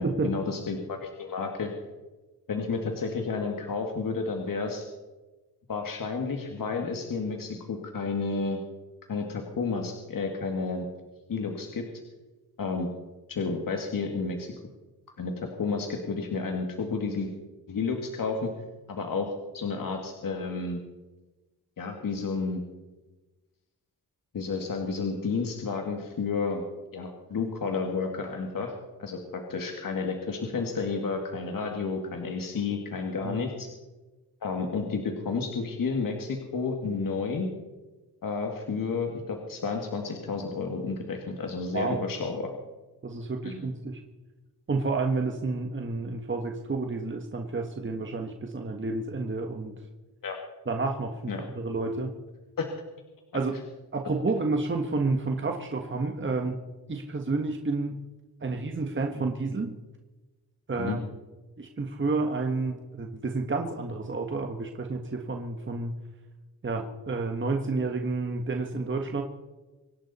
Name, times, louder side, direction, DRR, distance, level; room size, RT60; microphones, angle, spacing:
voice 1, 0.0-1.7 2.5-4.8 5.7-8.6 9.1-10.9 11.3-11.8 12.6-12.9 13.3-14.5 15.2-15.3 15.6-17.3 17.7-18.5 18.9-19.3 19.5-20.8 21.8-22.6 24.3-26.6 26.9-28.7 29.0-33.7 34.4-37.5 38.2-42.5 43.4-43.6 50.2-50.4 51.3-51.4 52.6-52.7 60.8-61.0, left 4 dB, 55° left, 2 dB, 2.1 m, -31 dB
voice 2, 41.7-42.1 43.0-44.0 44.7-49.8 50.7-52.2 53.3-53.6 53.9-56.6 56.9-58.0 58.4-59.7 60.7-61.0 61.6-65.9 66.6-69.2, right 3 dB, 30° right, 3 dB, 1.5 m, -30 dB
25.5 x 11.0 x 4.3 m, 1.2 s
cardioid pair, 100°, 39 cm